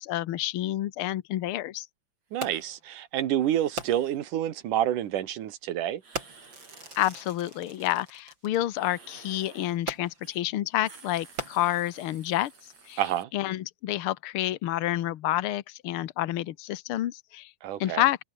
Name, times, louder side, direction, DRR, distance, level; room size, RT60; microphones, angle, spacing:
voice 1, 0.0-1.9 7.0-12.5 12.9-13.0 13.3-17.5 17.8-18.2, left 14 dB, 85° left, 1.2 m, -29 dB
sound 1, 2.3-2.6 3.3-4.2 6.0-7.0 8.7-9.8 10.2-10.4 10.7-13.2, right 4 dB, 50° right, 6.9 m, -53 dB
voice 2, 2.3-6.0 13.0-13.3 17.6-18.0, right 11 dB, 75° right, 3.0 m, -28 dB
Fireworks, 2.4-2.8 3.8-4.3 5.1-5.3 6.1-8.6 9.9-10.4 11.2-12.0 12.7-12.8, right 2 dB, 35° right, 7.4 m, -39 dB
omnidirectional pair, 3.8 m